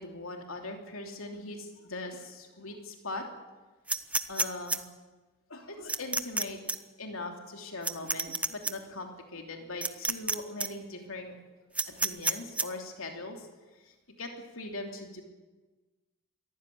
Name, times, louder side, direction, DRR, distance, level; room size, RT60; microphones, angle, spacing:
voice 1, 0.0-3.2 4.3-4.8 5.5-6.6 7.0-11.3 11.9-13.5 13.8-14.3 14.5-15.2, left 2 dB, 90° left, 3 dB, 3.0 m, -40 dB
sound 1, 3.9-4.8 5.9-6.4 6.7-6.8 7.8-8.7 9.8-10.3 10.6-10.7 11.7-12.6, right 2 dB, 5° right, 0.7 m, -28 dB
23.0 x 15.0 x 9.4 m, 1.2 s
head